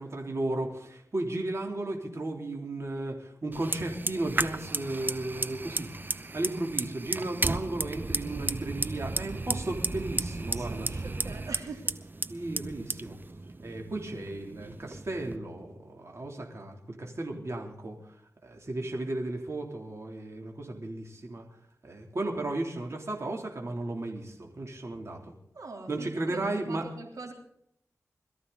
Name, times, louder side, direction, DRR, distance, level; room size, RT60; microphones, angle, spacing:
voice 1, 0.0-10.9 12.3-13.2 13.6-18.0 18.4-21.5 21.8-25.3 25.9-26.8, right 2 dB, 55° right, 1 dB, 3.3 m, -35 dB
Fire, 3.5-15.4, right 2 dB, 35° right, 0.7 m, -34 dB
voice 2, 10.6-12.0 25.5-27.3, right 3 dB, 85° right, 1 dB, 3.5 m, -43 dB
21.5 x 14.0 x 4.1 m, 0.73 s
wide cardioid pair, 55°, 6 cm